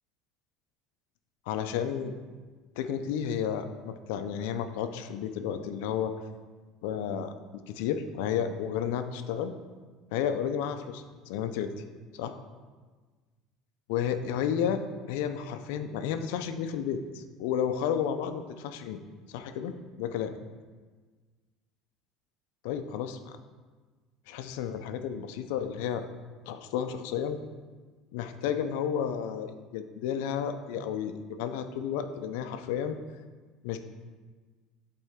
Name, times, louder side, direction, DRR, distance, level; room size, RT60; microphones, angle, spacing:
voice 1, 1.5-2.1 2.8-6.1 6.8-7.3 7.7-9.5 10.1-11.7 12.1-12.4 13.9-14.8 15.1-19.0 19.3-20.3 22.6-23.4 24.3-26.1 26.5-27.4 28.1-33.0 33.6-33.8, left 8 dB, 80° left, 8 dB, 0.5 m, -32 dB
8.0 x 4.3 x 3.6 m, 1.4 s
cardioid pair, 160°, 0 cm